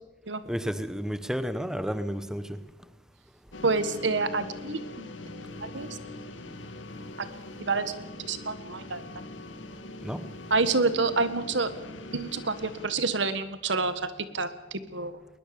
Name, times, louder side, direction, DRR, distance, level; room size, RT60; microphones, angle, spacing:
voice 1, 0.5-2.6 10.0-10.2, equal, 5° right, 0.9 m, -31 dB
sound 1, 3.5-12.9, left 2 dB, 75° left, 2.0 m, -42 dB
voice 2, 3.6-5.1 5.6-5.9 7.6-7.9 8.2-9.0 10.5-11.7 12.1-14.1 14.3-15.1, right 3 dB, 70° right, 1.6 m, -28 dB
20.5 x 20.5 x 7.0 m
head